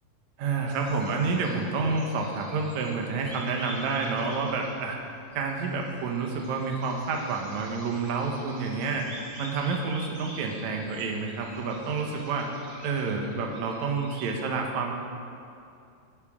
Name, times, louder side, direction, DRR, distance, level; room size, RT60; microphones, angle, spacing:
voice 1, 0.4-5.0 5.3-9.0 9.4-12.5 12.8-14.9, right 4 dB, 65° right, 1 dB, 2.0 m, -29 dB
sound 1, 0.7-14.3, right 1 dB, 35° right, 0.8 m, -47 dB
19.0 x 9.9 x 3.8 m, 2.5 s
omnidirectional pair, 4.6 m